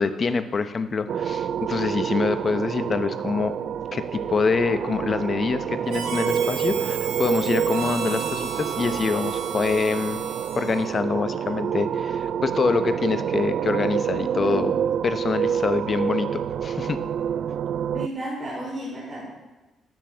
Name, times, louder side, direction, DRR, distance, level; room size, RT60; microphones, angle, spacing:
voice 1, 0.0-3.5 3.9-10.2 10.5-14.7 15.0-17.0, left 4 dB, 40° left, 11 dB, 0.9 m, -25 dB
sound 1, 1.1-18.1, right 8 dB, 65° right, 0.4 m, -27 dB
Harmonica, 5.9-10.9, right 7 dB, 90° right, 1.8 m, -34 dB
voice 2, 17.9-19.2, right 1 dB, 35° right, -7 dB, 4.8 m, -32 dB
12.0 x 9.3 x 6.3 m, 1.1 s
cardioid pair, 90°, 0 cm